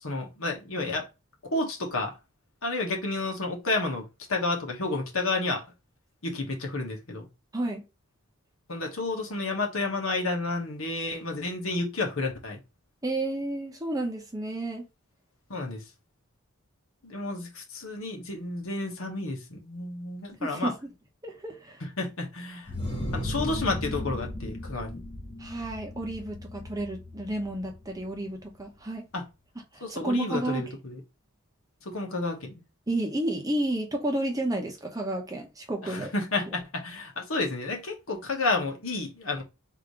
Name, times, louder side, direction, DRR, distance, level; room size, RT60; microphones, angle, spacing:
voice 1, 0.0-1.1 1.4-2.1 2.6-5.6 6.2-7.3 8.7-12.6 15.5-15.8 17.0-20.7 21.8-22.7 23.1-25.0 29.1-29.2 29.8-31.0 31.8-32.6 35.8-39.4, left 2 dB, 70° left, 1.3 m, -31 dB
voice 2, 13.0-14.9 20.4-20.9 21.2-21.8 25.4-29.1 29.7-30.7 32.9-36.1 36.5-36.6, right 1 dB, 15° right, 0.9 m, -31 dB
whoosh dark, 22.7-28.2, left 1 dB, 25° left, 1.2 m, -36 dB
3.7 x 2.7 x 4.7 m
head